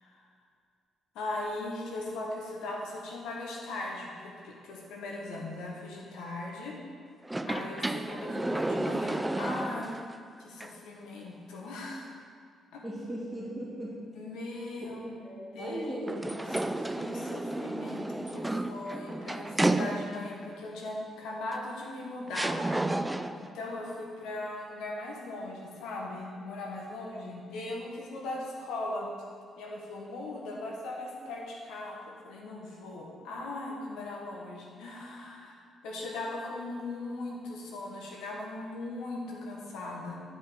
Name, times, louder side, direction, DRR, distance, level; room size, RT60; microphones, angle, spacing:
voice 1, 1.1-6.8 7.5-10.0 10.4-12.1 12.7-12.8 14.1-15.2 15.5-22.6 23.0-29.1 29.6-35.6 35.8-40.2, left 2 dB, 90° left, -1 dB, 1.4 m, -39 dB
sound 1, 7.2-10.2 10.6-10.7 16.1-20.4 21.5-21.6 22.3-23.5, right 2 dB, 10° right, 0.4 m, -32 dB
voice 2, 12.8-13.9 15.2-16.2, right 1 dB, 5° left, -7 dB, 2.5 m, -37 dB
11.5 x 5.5 x 5.1 m, 2.2 s
cardioid pair, 90°, 0 cm